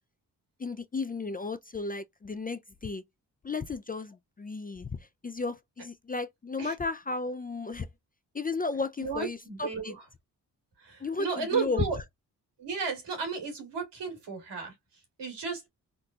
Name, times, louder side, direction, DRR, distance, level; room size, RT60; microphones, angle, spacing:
voice 1, 0.6-3.0 3.4-7.9 8.3-9.9 11.0-11.8, left 4 dB, 20° left, 0.4 m, -34 dB
voice 2, 9.0-10.0 10.8-12.0 12.6-15.7, right 5 dB, 75° right, 2.0 m, -34 dB
3.8 x 2.2 x 2.7 m
cardioid pair, 50°, 42 cm